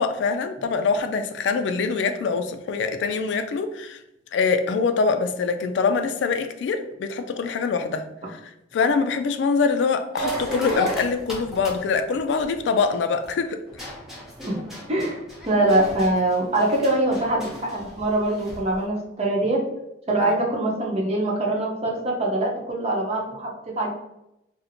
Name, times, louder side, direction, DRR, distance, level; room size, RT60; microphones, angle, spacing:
voice 1, 0.0-4.0 4.3-8.4 8.7-13.9 20.3-20.4, left 4 dB, 65° left, 8 dB, 0.3 m, -24 dB
sound 1, 10.1-13.3 13.7-18.7, left 1 dB, ahead, 0.8 m, -34 dB
voice 2, 14.9-19.6 20.1-23.9, right 1 dB, 35° right, -2 dB, 0.8 m, -23 dB
4.2 x 2.1 x 2.6 m, 0.85 s
head